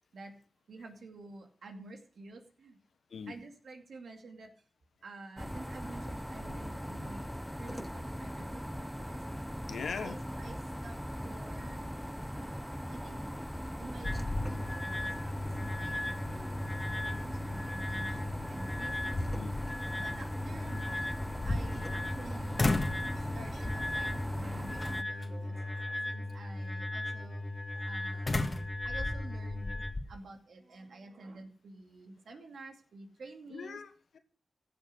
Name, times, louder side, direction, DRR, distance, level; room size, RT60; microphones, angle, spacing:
voice 1, 0.7-2.8 3.3-4.5 5.0-7.3 7.6-9.2 10.0-11.9 12.3-13.2 13.8-16.6 17.0-19.2 19.9-22.7 23.1-27.5 27.7-33.8, right 3 dB, 80° right, 2.4 m, -50 dB
sound 1, 5.4-25.0, equal, 5° left, 0.8 m, -40 dB
voice 2, 9.7-10.2 19.3-19.6 20.1-20.3 33.5-34.2, left 5 dB, 80° left, 1.4 m, -41 dB
sound 2, 13.4-13.7 14.0-15.0 15.4-15.5 18.2-18.3 18.8-19.8 21.1-22.2 22.6-23.1 23.6-24.0 24.8-25.3 28.3-30.1, left 2 dB, 45° left, 1.8 m, -34 dB
sound 3, 14.0-29.9, left 1 dB, 20° left, 2.4 m, -38 dB
15.5 x 7.0 x 6.3 m
cardioid pair, 40°, 0 cm